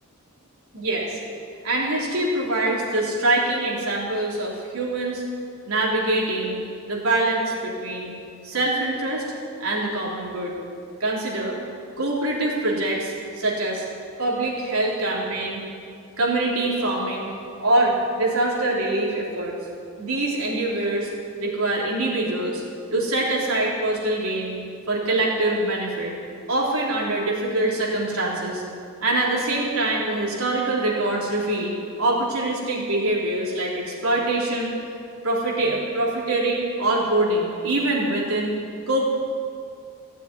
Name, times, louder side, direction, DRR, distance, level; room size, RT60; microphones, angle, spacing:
voice 1, 0.7-1.2 1.6-5.2 5.7-6.6 6.9-8.2 8.4-9.3 9.6-10.6 11.0-11.6 12.0-13.8 14.2-15.6 16.2-17.3 17.6-19.5 20.0-21.1 21.4-22.6 22.9-24.6 24.9-26.1 26.5-28.6 29.0-34.8 35.2-38.6 38.9-39.1, right 2 dB, 80° right, -4 dB, 3.6 m, -24 dB
16.0 x 7.4 x 9.6 m, 2.4 s
head